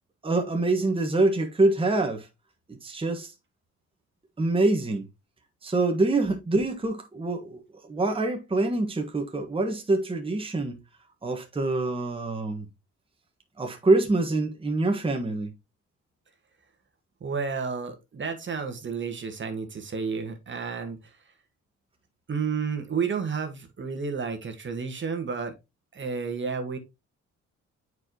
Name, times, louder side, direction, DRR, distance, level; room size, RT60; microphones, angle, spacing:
voice 1, 0.2-2.3 2.7-3.3 4.4-5.0 5.6-10.8 11.2-12.6 13.6-15.5, right 2 dB, 20° right, 1.3 m, -25 dB
voice 2, 17.2-21.2 22.3-25.5 25.9-26.8, right 5 dB, 40° right, 1.4 m, -31 dB
7.7 x 4.7 x 2.9 m
cardioid pair, 90°, 30 cm